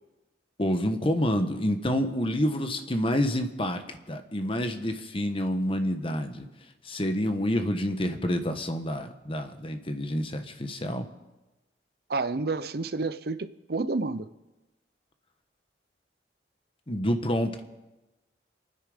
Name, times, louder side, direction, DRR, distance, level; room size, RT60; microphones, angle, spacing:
voice 1, 0.6-6.5 6.8-11.1 16.9-17.6, equal, 30° left, 1.2 m, -28 dB
voice 2, 12.1-14.3, right 3 dB, 60° right, 0.7 m, -30 dB
28.0 x 9.7 x 5.1 m
head